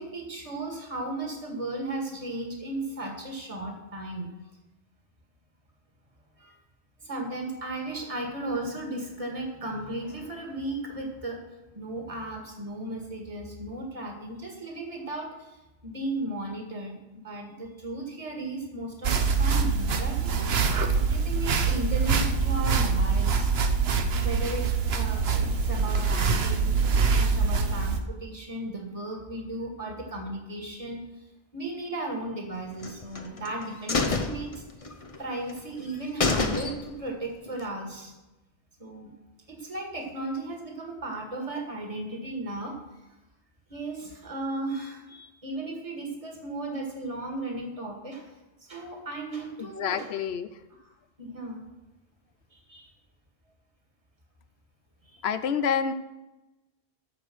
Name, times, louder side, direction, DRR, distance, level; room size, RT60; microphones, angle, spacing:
voice 1, 0.0-4.3 6.4-6.6 7.0-11.4 11.7-23.5 24.0-34.6 35.2-38.2 38.8-39.1 39.5-43.0 43.7-50.1 50.8-50.9 51.2-51.6 52.5-52.9 55.0-55.3, right 2 dB, 35° right, 1 dB, 2.0 m, -36 dB
sound 1, 19.0-28.0, right 5 dB, 75° right, 1.1 m, -24 dB
sound 2, 32.8-33.5 33.9-35.2 35.5-35.6 35.9-36.0 36.2-37.1 37.5-37.6, left 3 dB, 35° left, 0.8 m, -28 dB
voice 2, 49.6-50.5 55.2-55.9, left 7 dB, 80° left, 12 dB, 1.0 m, -28 dB
14.0 x 5.1 x 6.3 m, 1.0 s
omnidirectional pair, 1.1 m